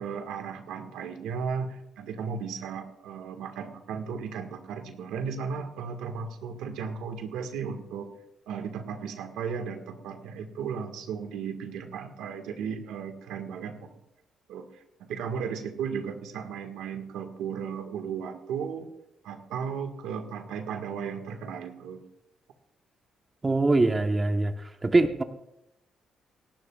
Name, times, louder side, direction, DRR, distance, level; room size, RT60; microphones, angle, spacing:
voice 1, 0.0-8.1 8.5-13.9 14.5-18.9 19.2-22.0, right 6 dB, 90° right, 5 dB, 1.7 m, -35 dB
voice 2, 23.4-24.5 24.8-25.2, right 2 dB, 25° right, 6 dB, 1.1 m, -22 dB
27.5 x 12.0 x 2.4 m, 0.84 s
cardioid pair, 90°, 0 cm